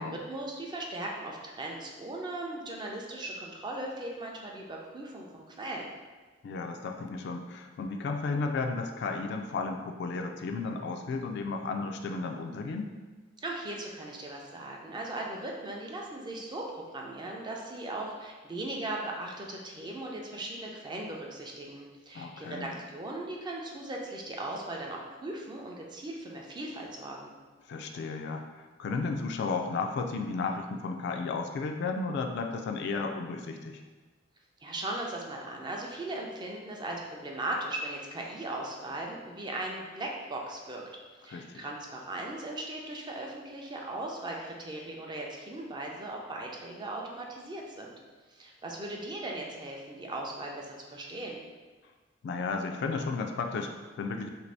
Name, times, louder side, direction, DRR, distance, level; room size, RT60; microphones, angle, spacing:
voice 1, 0.0-5.9 13.4-27.3 34.6-40.8 41.2-47.9 48.3-51.4, right 2 dB, 25° right, -1 dB, 0.4 m, -38 dB
voice 2, 6.4-13.0 22.1-22.7 27.7-28.4 28.8-33.8 41.3-41.7 52.2-54.3, left 4 dB, 60° left, 4 dB, 0.3 m, -33 dB
2.9 x 2.6 x 3.3 m, 1.3 s
head